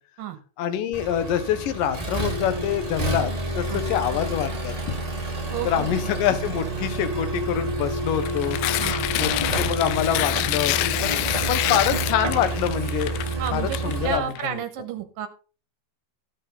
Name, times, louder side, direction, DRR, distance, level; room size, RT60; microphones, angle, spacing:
voice 1, 0.6-4.7 5.6-8.6 9.2-13.2 13.5-14.5, left 9 dB, 65° left, 10 dB, 2.5 m, -26 dB
Accelerating revving vroom, 0.9-14.2, right 2 dB, 20° right, 1.0 m, -29 dB
voice 2, 5.5-5.9 8.8-9.1 13.4-15.3, right 10 dB, 65° right, 7 dB, 2.7 m, -31 dB
Tearing, 8.2-14.4, left 16 dB, 85° left, 2.9 m, -27 dB
15.0 x 5.4 x 5.2 m, 0.36 s
omnidirectional pair, 4.9 m